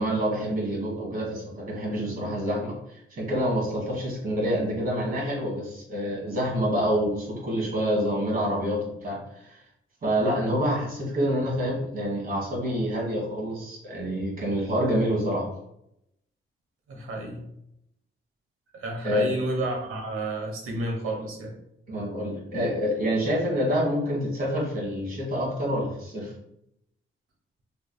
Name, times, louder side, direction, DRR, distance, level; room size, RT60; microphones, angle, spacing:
voice 1, 0.0-9.6 10.0-15.4 19.0-19.2 21.9-26.3, equal, 40° right, -3 dB, 1.5 m, -27 dB
voice 2, 16.9-17.4 18.7-21.5, right 2 dB, 85° right, 2 dB, 0.9 m, -31 dB
3.4 x 3.1 x 2.2 m, 0.79 s
cardioid pair, 105°, 21 cm